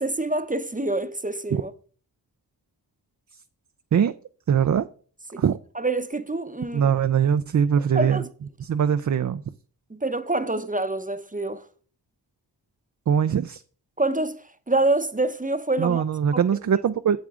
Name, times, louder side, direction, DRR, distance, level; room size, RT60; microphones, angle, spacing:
voice 1, 0.0-1.7 5.3-5.4 5.8-6.9 7.9-8.2 10.0-11.6 14.0-16.0 16.8-16.9, right 2 dB, 20° right, 0.8 m, -26 dB
voice 2, 4.5-4.9 5.4-5.6 6.7-8.2 8.6-9.4 13.1-13.6 15.8-17.2, right 8 dB, 45° right, 0.5 m, -22 dB
8.5 x 7.3 x 3.7 m
cardioid pair, 50°, 42 cm